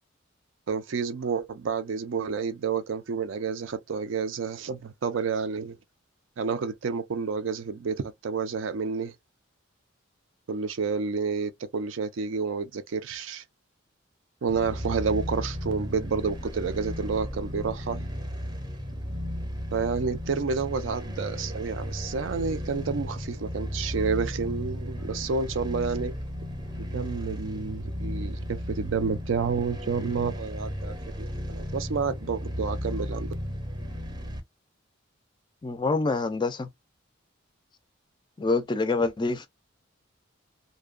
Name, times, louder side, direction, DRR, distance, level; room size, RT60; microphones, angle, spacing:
voice 1, 0.7-5.8 6.4-9.1 10.5-13.4 14.4-18.1 19.7-26.1 26.9-33.3, right 5 dB, 70° right, 0.4 m, -30 dB
sound 1, 14.5-34.4, equal, 20° right, 0.6 m, -34 dB
voice 2, 35.6-36.7 38.4-39.5, left 3 dB, 25° left, 0.3 m, -26 dB
2.6 x 2.1 x 2.3 m
head